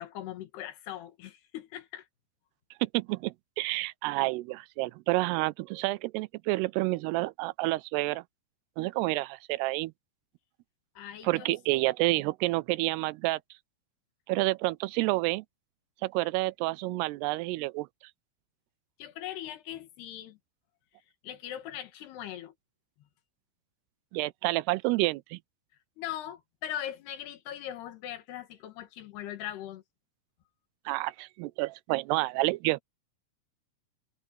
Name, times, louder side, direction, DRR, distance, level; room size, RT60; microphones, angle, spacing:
voice 1, 0.0-2.1 11.0-11.5 19.0-20.4 21.2-22.5 26.0-29.8, left 11 dB, 75° left, 3.6 m, -40 dB
voice 2, 2.8-8.2 8.8-9.9 11.2-13.4 14.3-15.4 16.0-17.9 24.1-25.4 30.9-32.8, right 21 dB, 85° right, 2.5 m, -29 dB
omnidirectional pair, 4.9 m